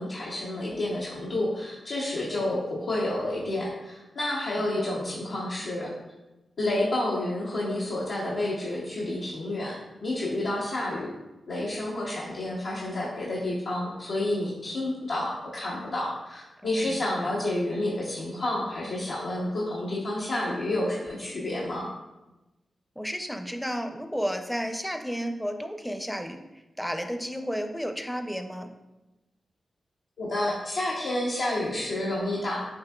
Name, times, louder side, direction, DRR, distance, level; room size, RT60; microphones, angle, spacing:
voice 1, 0.0-5.9 6.6-9.8 10.0-11.2 11.5-21.9 30.2-32.6, left 1 dB, 80° left, -7 dB, 0.6 m, -30 dB
voice 2, 16.6-17.0 23.0-28.7, equal, 5° left, 6 dB, 0.5 m, -32 dB
5.9 x 2.7 x 2.3 m, 1.0 s
cardioid pair, 45°, 0 cm